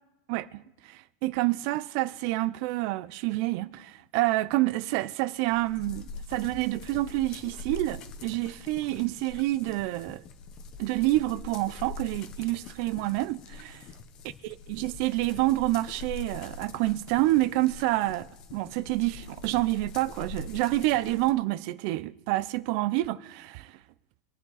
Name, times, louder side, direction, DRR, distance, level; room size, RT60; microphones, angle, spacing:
voice 1, 0.3-10.2 10.8-13.7 14.7-23.7, right 18 dB, 50° right, 0.5 m, -28 dB
sound 1, 5.4-21.3, left 4 dB, 35° left, 1.1 m, -44 dB
25.0 x 9.0 x 4.1 m
supercardioid pair, 145°, 2 cm